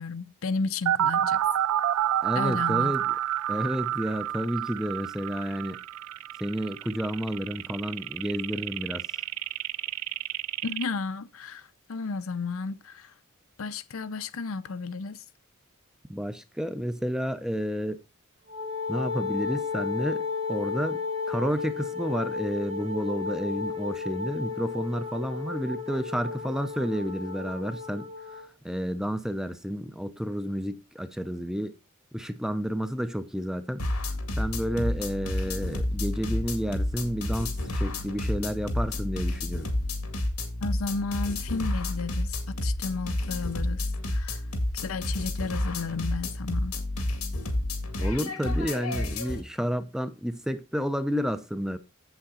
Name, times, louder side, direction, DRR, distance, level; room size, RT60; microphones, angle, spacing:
voice 1, 0.0-1.4 2.3-2.9 10.6-13.1 13.6-15.2 40.6-44.4 44.7-46.8, left 4 dB, 70° left, 0.6 m, -33 dB
sound 1, 0.9-10.8, right 11 dB, 85° right, 0.3 m, -29 dB
voice 2, 2.2-3.1 3.5-5.8 6.4-9.0 16.1-18.0 18.9-21.0 21.3-28.1 28.3-31.7 32.1-33.8 34.4-39.7 48.0-51.8, equal, 5° right, 0.6 m, -31 dB
Wind instrument woodwind instrument, 18.5-28.5, left 5 dB, 30° right, 0.8 m, -33 dB
sound 2, 33.8-49.4, left 1 dB, 90° left, 2.1 m, -30 dB
8.1 x 7.7 x 3.9 m
head